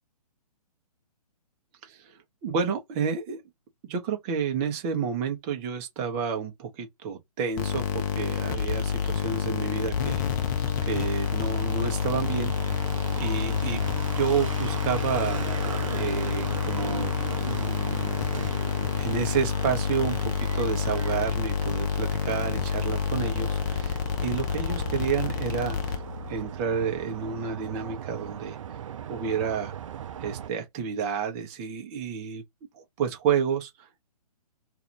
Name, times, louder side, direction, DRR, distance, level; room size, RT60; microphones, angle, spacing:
voice 1, 1.8-3.4 3.8-10.3 10.8-12.9 13.2-13.8 14.1-15.4 15.9-18.3 18.9-26.0 26.3-28.8 29.1-29.7 30.2-32.4 32.7-34.0, right 6 dB, 25° right, 0.7 m, -30 dB
sound 1, 7.6-26.3, left 7 dB, 30° left, 0.5 m, -28 dB
sound 2, 10.6-30.5, right 9 dB, 50° right, 0.4 m, -39 dB
2.4 x 2.4 x 2.9 m
figure-of-eight pair, 130°, 20 cm